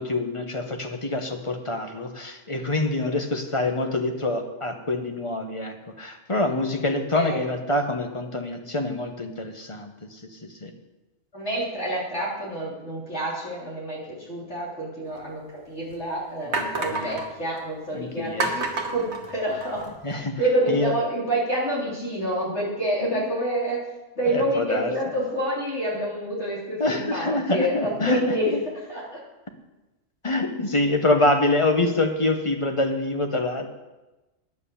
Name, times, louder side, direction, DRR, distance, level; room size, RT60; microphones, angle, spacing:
voice 1, 0.0-9.9 10.6-10.7 16.5-17.2 17.9-18.5 20.0-20.4 20.7-20.9 23.0-23.2 24.3-24.9 26.8-28.3 30.2-33.7, left 2 dB, 25° left, 5 dB, 1.1 m, -26 dB
voice 2, 11.3-19.9 20.4-23.8 24.1-29.2, right 1 dB, 60° left, -5 dB, 4.1 m, -28 dB
sound 1, 15.2-15.3 15.9-16.0 16.5-17.3 18.4-19.9, right 3 dB, 60° right, 1.5 m, -29 dB
9.6 x 9.0 x 7.0 m, 1.1 s
omnidirectional pair, 1.3 m